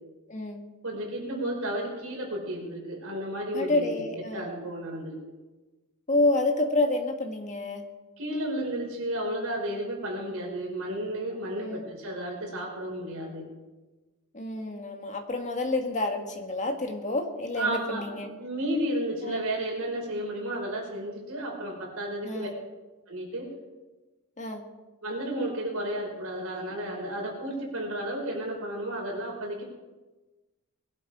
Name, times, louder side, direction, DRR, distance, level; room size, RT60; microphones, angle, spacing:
voice 1, 0.3-0.6 3.5-4.5 6.1-7.8 11.6-11.8 14.3-18.3 19.2-19.4 22.2-22.5 24.4-24.6, left 2 dB, 35° left, 4 dB, 1.8 m, -28 dB
voice 2, 0.8-5.2 8.2-13.5 17.5-22.5 23.1-23.5 25.0-29.6, right 1 dB, 65° right, 0 dB, 5.0 m, -32 dB
20.5 x 11.5 x 4.9 m, 1.2 s
head